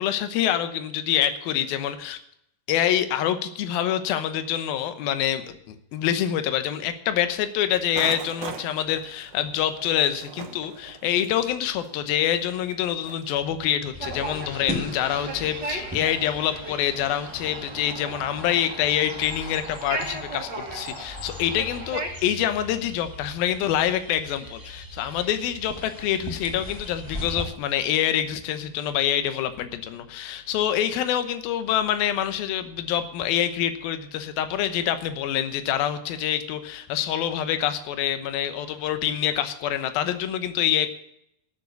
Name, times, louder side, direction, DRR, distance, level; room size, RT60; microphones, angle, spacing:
voice 1, 0.0-2.2 2.7-40.9, left 10 dB, 75° left, 10 dB, 2.7 m, -26 dB
sound 1, 7.9-13.3, right 8 dB, 70° right, 2.7 m, -40 dB
sound 2, 13.9-27.4, left 1 dB, 5° right, 2.2 m, -40 dB
sound 3, 14.0-22.1, right 3 dB, 35° right, 2.0 m, -36 dB
14.0 x 6.8 x 8.1 m, 0.75 s
omnidirectional pair, 4.5 m